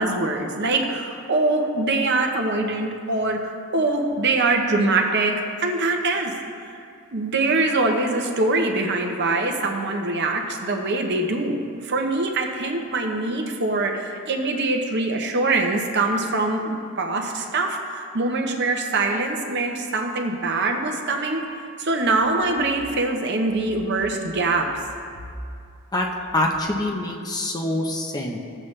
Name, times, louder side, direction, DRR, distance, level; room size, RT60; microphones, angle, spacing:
voice 1, 0.0-6.3 7.1-21.4 21.8-24.7, right 2 dB, 50° right, 2 dB, 0.9 m, -23 dB
voice 2, 26.3-28.4, left 1 dB, 20° left, 0 dB, 0.7 m, -25 dB
15.0 x 7.7 x 3.3 m, 2.3 s
head